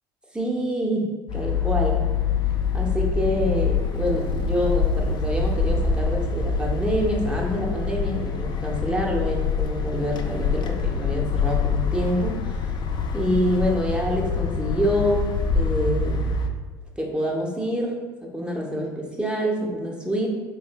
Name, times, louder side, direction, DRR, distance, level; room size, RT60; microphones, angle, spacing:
voice 1, 0.3-2.0 2.7-12.6 13.1-15.3 15.5-16.3 17.0-20.4, equal, 10° right, -1 dB, 0.7 m, -26 dB
sound 1, 1.3-16.5, left 5 dB, 45° left, 0.4 m, -25 dB
3.2 x 3.1 x 2.2 m, 1.4 s
hypercardioid pair, 65°, 11 cm